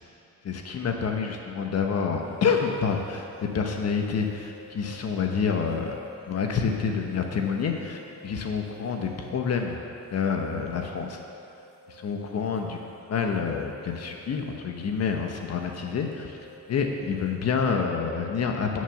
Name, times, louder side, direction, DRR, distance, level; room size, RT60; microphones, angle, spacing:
voice 1, 0.4-6.0 6.3-9.8 10.1-11.2 11.9-16.4 16.7-18.8, left 6 dB, 55° left, 3 dB, 1.1 m, -28 dB
sound 1, 2.1-17.7, left 3 dB, 85° left, 1.4 m, -51 dB
11.0 x 6.4 x 6.9 m, 2.7 s
cardioid pair, 90°, 30 cm